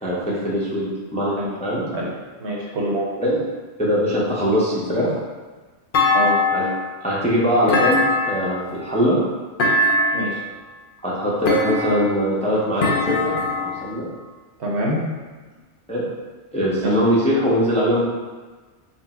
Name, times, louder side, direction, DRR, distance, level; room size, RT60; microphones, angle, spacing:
voice 1, 0.0-1.8 3.2-3.4 3.8-5.1 6.5-6.7 7.0-9.2 11.0-14.1 15.9-16.1 16.5-18.0, equal, 10° left, -6 dB, 0.5 m, -21 dB
voice 2, 2.4-3.2 6.1-6.4 10.1-10.4 14.6-15.0 16.8-16.9, right 1 dB, 70° right, -4 dB, 1.1 m, -25 dB
Thump thud, 5.9-6.9 7.7-8.6 9.6-10.4 11.5-12.2 12.8-13.8, left 2 dB, 60° left, 0.6 m, -21 dB
4.3 x 2.0 x 4.2 m, 1.3 s
omnidirectional pair, 1.2 m